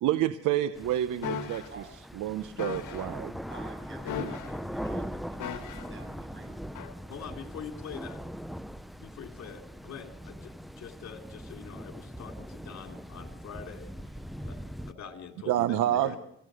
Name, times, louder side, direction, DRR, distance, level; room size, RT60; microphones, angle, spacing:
voice 1, 0.0-1.6 2.2-3.3 15.5-16.2, right 12 dB, 85° right, 11 dB, 0.9 m, -28 dB
sound 1, 0.7-14.9, equal, ahead, 0.8 m, -41 dB
sound 2, 1.2-1.7 2.6-3.1 4.1-4.7 5.4-6.0 6.8-6.9, left 8 dB, 80° left, 1.7 m, -37 dB
voice 2, 3.5-7.0 14.0-15.1 15.9-16.1, right 3 dB, 40° right, 6 dB, 7.2 m, -51 dB
voice 3, 7.1-8.2 9.0-13.9 14.5-14.6 14.9-16.2, left 7 dB, 60° left, 4 dB, 3.3 m, -44 dB
26.5 x 16.0 x 6.4 m, 0.78 s
cardioid pair, 90°, 30 cm